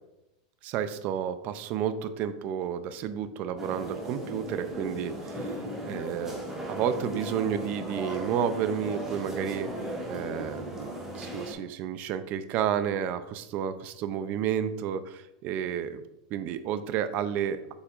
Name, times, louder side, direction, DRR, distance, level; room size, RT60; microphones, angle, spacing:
voice 1, 0.6-9.7 10.1-16.0 16.3-17.7, right 9 dB, 40° right, 12 dB, 0.5 m, -31 dB
sound 1, 3.6-11.5, equal, 10° right, 1.8 m, -36 dB
7.9 x 5.8 x 2.5 m, 0.91 s
supercardioid pair, 145°, 4 cm